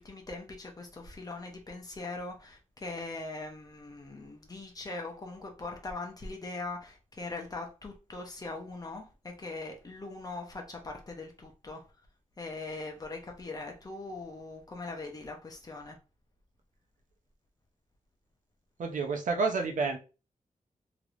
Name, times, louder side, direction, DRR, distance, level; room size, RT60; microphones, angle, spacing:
voice 1, 0.0-11.8 12.4-16.0, left 3 dB, 30° left, 0.8 m, -41 dB
voice 2, 18.8-20.0, right 4 dB, 80° right, 0.7 m, -29 dB
3.2 x 2.9 x 2.5 m
wide cardioid pair, 140°, 13 cm